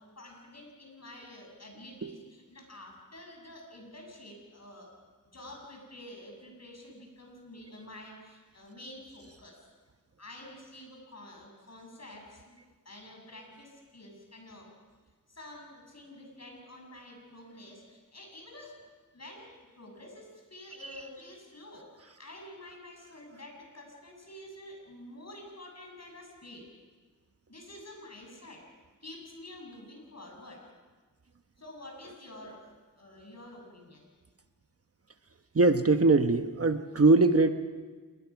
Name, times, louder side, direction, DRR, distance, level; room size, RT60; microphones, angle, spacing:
voice 1, 0.1-4.9 5.3-9.6 10.2-12.6 12.8-14.7 15.3-18.8 19.1-19.5 19.8-21.9 22.2-26.7 27.5-28.6 29.0-30.6 31.6-34.0, left 1 dB, 50° left, 1 dB, 7.5 m, -48 dB
voice 2, 35.5-37.5, right 3 dB, 45° right, 8 dB, 1.0 m, -22 dB
28.0 x 21.0 x 6.0 m, 1.4 s
wide cardioid pair, 70°, 34 cm